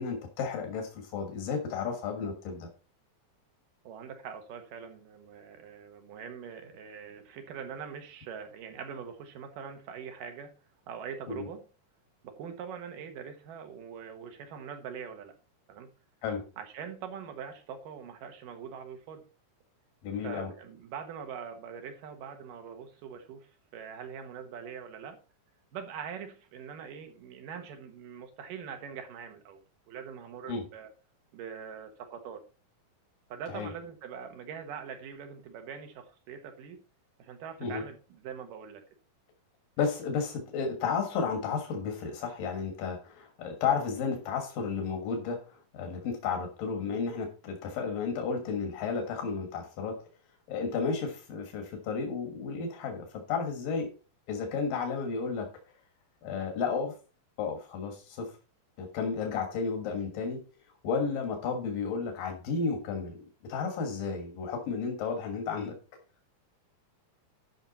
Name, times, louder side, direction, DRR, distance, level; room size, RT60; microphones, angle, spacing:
voice 1, 0.0-2.7 11.3-11.5 16.2-16.4 20.0-20.5 30.5-30.6 33.5-33.7 37.6-37.8 39.8-49.9 50.5-53.9 54.3-55.5 56.2-56.9 57.4-58.3 58.8-60.4 60.8-65.8, left 5 dB, 90° left, 3 dB, 3.3 m, -32 dB
voice 2, 3.8-10.6 10.9-11.6 12.2-15.3 15.7-15.9 16.6-19.3 20.2-25.2 25.7-30.9 31.3-32.4 33.3-36.8 37.2-38.8 61.0-61.2, right 7 dB, 80° right, 6 dB, 3.0 m, -43 dB
12.5 x 5.7 x 4.1 m, 0.35 s
omnidirectional pair, 3.8 m